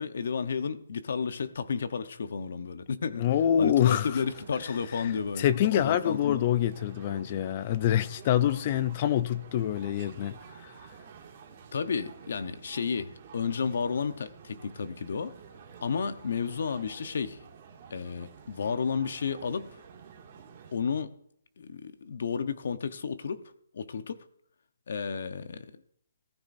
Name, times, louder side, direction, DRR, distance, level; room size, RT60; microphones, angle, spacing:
voice 1, 0.0-3.3 3.6-6.4 11.7-15.4 15.8-17.4 17.9-19.8 20.7-21.1 21.6-23.4 23.7-24.2 24.9-25.8, left 6 dB, 55° left, 0.9 m, -32 dB
voice 2, 3.2-4.2 5.4-10.7, left 10 dB, 25° left, 0.4 m, -26 dB
sound 1, 4.0-20.8, right 6 dB, 25° right, 2.2 m, -51 dB
15.0 x 14.0 x 2.7 m
hypercardioid pair, 170°, 0 cm